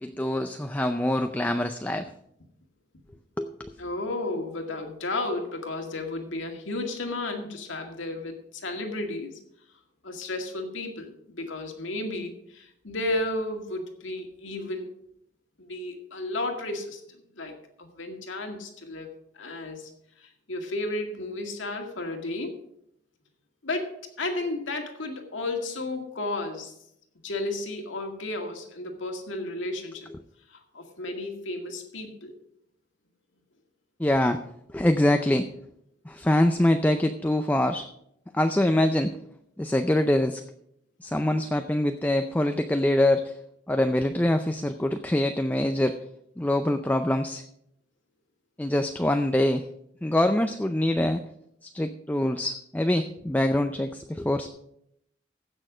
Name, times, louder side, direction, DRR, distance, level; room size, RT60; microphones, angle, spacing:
voice 1, 0.0-2.1 3.4-3.7 34.0-34.4 34.7-35.5 36.1-37.9 38.3-39.1 39.6-40.4 41.0-43.3 43.7-45.9 46.4-47.4 48.6-49.6 50.0-51.2 51.7-54.5, left 1 dB, 10° left, 7 dB, 0.4 m, -24 dB
voice 2, 3.8-9.4 10.0-14.9 15.6-19.1 19.3-19.9 20.2-22.6 23.6-26.7 27.2-30.1 30.5-32.3, left 2 dB, 85° left, 3 dB, 2.0 m, -33 dB
15.5 x 6.4 x 5.0 m, 0.75 s
head